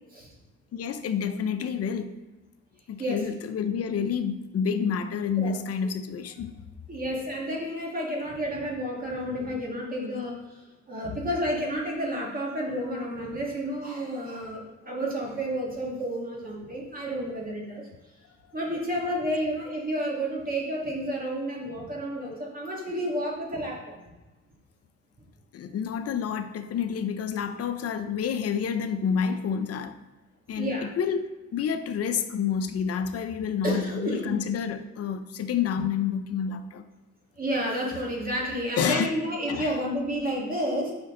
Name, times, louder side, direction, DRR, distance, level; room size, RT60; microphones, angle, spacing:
voice 1, 0.7-2.1 2.9-6.5 11.0-11.3 25.5-30.0 30.5-36.9 38.8-39.1 39.5-39.7, left 7 dB, 55° left, 8 dB, 0.6 m, -29 dB
voice 2, 6.9-17.9 18.5-24.0 30.6-30.9 33.6-34.4 37.4-40.9, equal, 30° right, -3 dB, 2.0 m, -31 dB
6.1 x 5.2 x 3.7 m, 1.1 s
cardioid pair, 90°, 30 cm